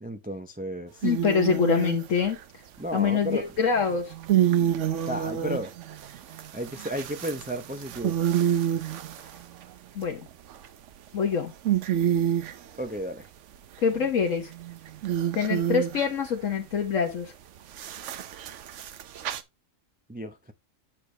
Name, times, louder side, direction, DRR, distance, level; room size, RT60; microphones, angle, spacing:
voice 1, 0.0-1.1 2.8-3.4 5.1-5.7 6.5-8.1 12.8-13.3 20.1-20.5, equal, 15° right, 0.3 m, -33 dB
voice 2, 1.0-2.4 2.9-4.1 9.9-10.3 11.1-11.5 13.8-14.5 15.3-17.3, left 6 dB, 70° left, 1.4 m, -25 dB
sound 1, 1.0-2.4 3.8-9.6 10.3-10.9 11.3-11.4 11.7-12.6 13.9-16.3 17.7-19.4, right 10 dB, 65° right, 1.0 m, -28 dB
8.4 x 6.7 x 3.2 m
omnidirectional pair, 1.4 m